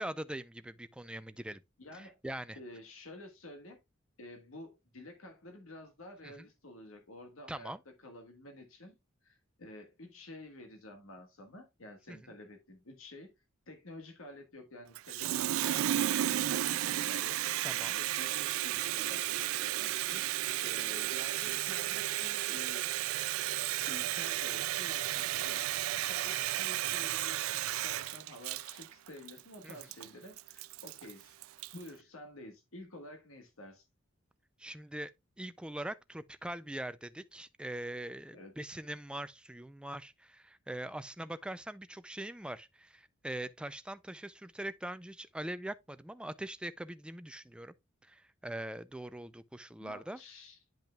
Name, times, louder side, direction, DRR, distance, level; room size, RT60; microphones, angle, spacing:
voice 1, 0.0-1.6 1.9-2.6 6.2-6.4 7.5-7.8 12.1-12.2 17.6-18.0 29.6-29.8 34.6-35.1 35.4-47.7 48.0-50.2, right 1 dB, 5° right, 0.4 m, -42 dB
voice 2, 1.8-2.2 2.5-3.8 4.2-9.0 9.2-13.3 13.7-20.2 20.6-22.9 23.9-31.4 31.7-33.8 38.3-38.5 49.8-50.6, left 1 dB, 85° left, 1.6 m, -50 dB
Water tap faucet, 14.9-31.9, right 13 dB, 85° right, 0.3 m, -33 dB
10.5 x 5.5 x 2.3 m
head